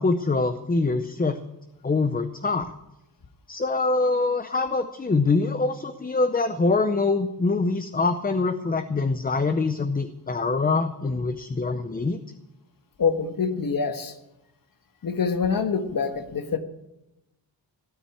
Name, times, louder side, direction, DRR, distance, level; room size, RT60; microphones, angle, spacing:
voice 1, 0.0-1.4 1.8-2.7 3.5-12.2, left 3 dB, 20° left, 9 dB, 0.6 m, -24 dB
voice 2, 13.0-14.1 15.0-16.6, left 5 dB, 50° left, 8 dB, 1.5 m, -25 dB
17.5 x 9.3 x 8.5 m, 0.93 s
wide cardioid pair, 165°, 42 cm